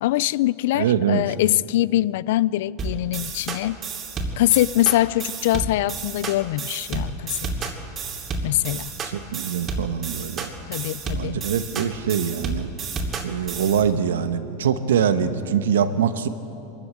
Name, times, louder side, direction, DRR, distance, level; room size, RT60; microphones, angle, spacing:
voice 1, 0.0-3.8 4.4-7.5 8.4-8.9 10.7-11.4, left 15 dB, 70° left, 0.4 m, -23 dB
voice 2, 0.7-1.2 8.6-10.5 11.1-12.7 13.2-16.3, right 8 dB, 85° right, 1.1 m, -24 dB
sound 1, 2.8-13.8, right 4 dB, 30° right, 2.7 m, -31 dB
22.5 x 14.0 x 8.8 m
hypercardioid pair, 115°, 0 cm